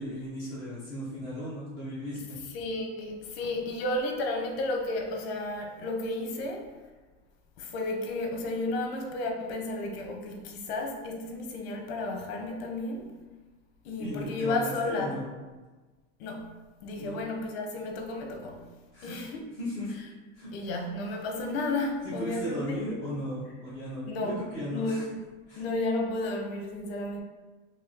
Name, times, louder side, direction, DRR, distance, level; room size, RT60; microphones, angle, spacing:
voice 1, 0.0-2.4 14.0-15.3 17.0-17.2 18.9-19.2 19.6-19.9 20.3-20.5 22.0-25.0 25.5-25.6, equal, 10° right, -14 dB, 0.7 m, -36 dB
voice 2, 2.5-6.7 7.6-13.1 13.8-15.2 16.2-16.5 16.8-18.7 19.0-19.5 20.5-23.0 24.1-25.1 25.6-27.2, left 2 dB, 55° left, 2 dB, 0.7 m, -32 dB
3.1 x 2.9 x 3.7 m, 1.3 s
supercardioid pair, 170°, 36 cm